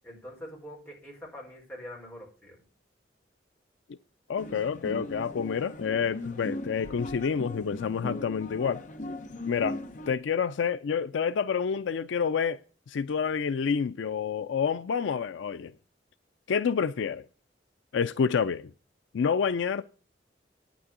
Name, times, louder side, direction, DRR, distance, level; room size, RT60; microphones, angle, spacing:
voice 1, 0.0-2.6, equal, 10° left, 4.7 m, -44 dB
voice 2, 4.3-8.8 9.5-9.8 10.1-12.6 12.9-15.7 16.5-17.2 17.9-18.7 19.1-19.8, left 6 dB, 90° left, 0.4 m, -28 dB
sound 1, 4.4-10.1, left 1 dB, 45° left, 0.8 m, -38 dB
9.5 x 6.2 x 8.1 m
head